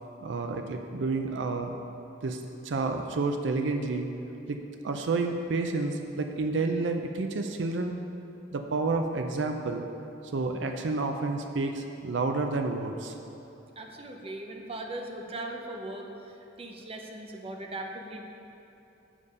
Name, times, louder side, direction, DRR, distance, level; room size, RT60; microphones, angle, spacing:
voice 1, 0.2-1.7 2.2-4.1 4.5-4.6 4.8-7.9 8.5-9.8 10.3-13.1, right 3 dB, 70° right, 5 dB, 0.5 m, -30 dB
voice 2, 13.8-18.2, right 2 dB, 30° right, 2 dB, 0.8 m, -39 dB
7.4 x 6.7 x 5.4 m, 2.8 s
head